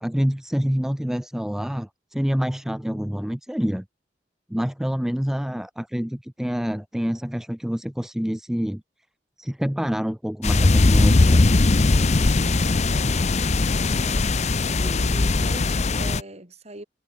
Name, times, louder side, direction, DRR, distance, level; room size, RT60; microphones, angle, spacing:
voice 1, 0.0-3.8 4.5-8.8 9.4-11.5, equal, 5° right, 0.4 m, -27 dB
sound 1, 10.4-16.2, left 3 dB, 40° left, 0.7 m, -19 dB
voice 2, 12.3-13.3 13.9-16.8, right 1 dB, 40° right, 7.0 m, -41 dB
head